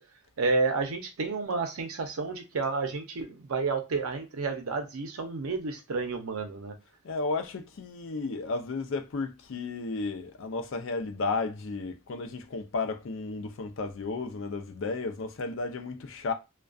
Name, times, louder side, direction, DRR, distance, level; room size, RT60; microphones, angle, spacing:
voice 1, 0.4-6.8, right 4 dB, 85° right, 0.6 m, -30 dB
voice 2, 7.0-16.3, left 3 dB, 60° left, 0.4 m, -33 dB
2.4 x 2.2 x 2.3 m
head